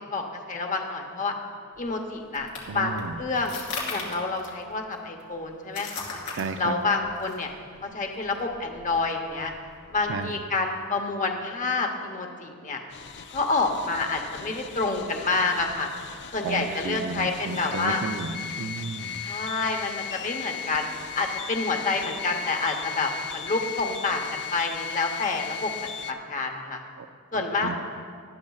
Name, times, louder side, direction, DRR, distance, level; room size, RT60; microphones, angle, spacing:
voice 1, 0.0-1.3 1.8-2.5 2.7-3.6 3.9-6.2 6.6-7.5 7.8-9.5 9.9-12.8 13.3-15.9 16.3-18.0 19.2-20.9 21.1-25.7 26.0-26.8 27.3-27.8, left 3 dB, 35° left, 3 dB, 0.9 m, -28 dB
sound 1, 1.7-10.3, left 4 dB, 85° left, 2.8 m, -40 dB
voice 2, 2.7-3.2 6.4-6.7 10.1-10.3 16.4-19.2 27.0-27.1 27.6-27.8, right 4 dB, 60° right, 8 dB, 0.5 m, -33 dB
sound 2, 12.9-26.1, left 7 dB, 55° left, 0.5 m, -37 dB
19.0 x 12.0 x 2.4 m, 2.1 s
head